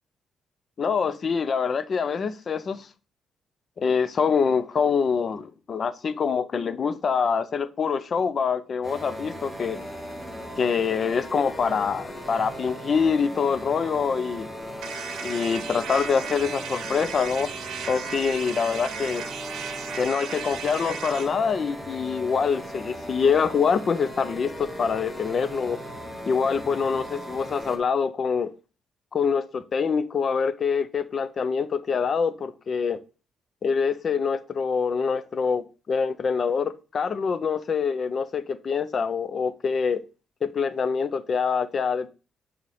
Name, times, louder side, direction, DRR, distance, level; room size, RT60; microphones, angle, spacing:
voice 1, 0.8-2.9 3.8-9.8 10.6-14.5 15.2-17.5 17.9-19.2 20.0-25.8 26.3-28.5 29.1-33.0 33.6-40.0 40.4-42.1, left 6 dB, 35° left, 0.4 m, -25 dB
sound 1, 8.8-27.8, equal, 5° left, 0.9 m, -38 dB
sound 2, 14.8-21.3, right 7 dB, 75° right, 0.8 m, -36 dB
6.4 x 4.2 x 4.0 m
cardioid pair, 170°, 0 cm